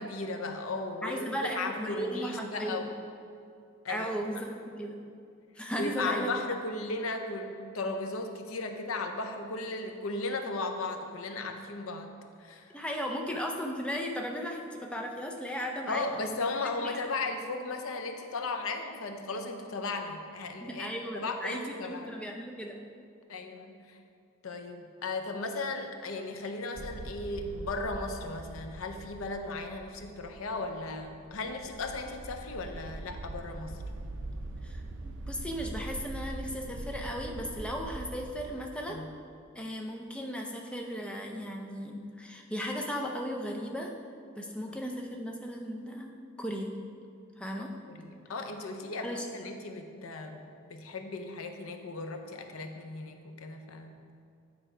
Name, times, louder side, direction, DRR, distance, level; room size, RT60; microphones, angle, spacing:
voice 1, 0.0-2.9 3.8-4.1 5.8-12.1 12.4-12.7 15.9-20.9 21.1-22.3 23.3-24.0 24.4-33.8 38.9-39.1 44.7-44.8 47.9-50.4 50.7-54.0, left 3 dB, 80° left, 5 dB, 0.6 m, -36 dB
voice 2, 1.0-2.9 3.9-5.0 5.6-6.3 12.7-16.3 16.8-17.1 20.6-22.8 34.6-39.1 39.6-43.9 44.4-46.1 46.4-46.7 47.4-47.7 49.0-49.3, equal, 5° left, 1 dB, 0.5 m, -36 dB
sound 1, 26.7-38.5, right 2 dB, 65° right, 0.5 m, -42 dB
9.0 x 3.3 x 4.9 m, 2.4 s
head